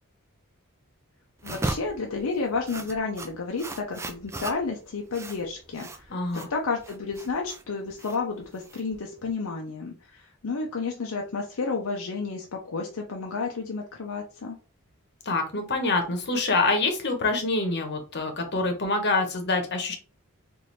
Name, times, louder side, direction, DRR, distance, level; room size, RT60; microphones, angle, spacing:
voice 1, 1.4-14.6, left 4 dB, 65° left, 1 dB, 0.6 m, -31 dB
sound 1, 1.4-9.3, right 2 dB, 10° right, 0.3 m, -37 dB
voice 2, 6.1-6.5 15.2-20.0, left 3 dB, 50° left, 4 dB, 0.9 m, -26 dB
4.1 x 2.6 x 3.1 m, 0.36 s
head